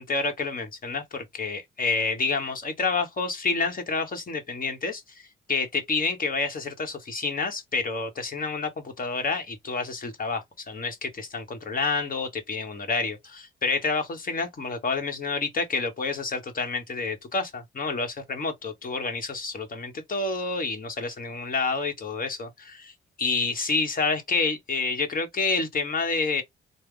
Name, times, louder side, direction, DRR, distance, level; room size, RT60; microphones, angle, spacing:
voice 1, 0.0-5.2 5.5-22.9 23.2-26.4, left 4 dB, 45° left, 1.3 m, -28 dB
3.4 x 2.2 x 3.3 m
supercardioid pair, 65°, 20 cm